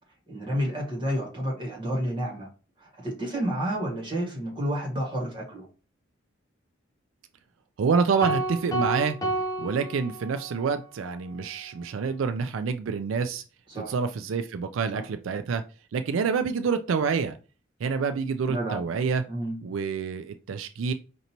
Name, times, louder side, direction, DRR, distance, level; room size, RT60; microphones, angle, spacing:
voice 1, 0.3-2.5 3.0-5.7 13.7-13.9 14.9-15.0 18.5-18.8 19.3-19.6, equal, 25° right, -2 dB, 1.7 m, -30 dB
voice 2, 7.8-9.2 9.6-13.4 13.8-15.6 15.9-17.4 17.8-19.2 19.6-20.9, right 5 dB, 85° right, 9 dB, 0.4 m, -27 dB
sound 1, 8.2-10.7, right 2 dB, 15° left, 0.6 m, -30 dB
5.2 x 2.6 x 2.9 m, 0.35 s
head